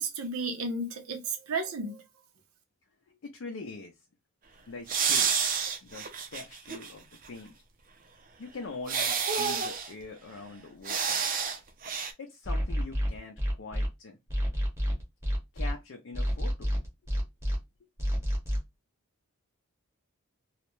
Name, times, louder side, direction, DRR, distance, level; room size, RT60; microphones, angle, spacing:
voice 1, 0.0-2.0, right 3 dB, 85° right, 0.6 m, -33 dB
voice 2, 3.1-3.9 4.7-5.3 5.8-7.6 8.4-11.2 12.2-14.2 15.5-16.7, left 3 dB, 65° left, 0.4 m, -43 dB
sound 1, 4.9-6.9 7.3-7.4 8.9-9.9 10.9-11.6 11.8-12.1, right 6 dB, 40° right, 0.4 m, -29 dB
sound 2, 12.4-13.9 14.3-15.7 16.1-17.6 18.0-18.6, equal, 10° right, 0.7 m, -28 dB
2.4 x 2.1 x 2.9 m
head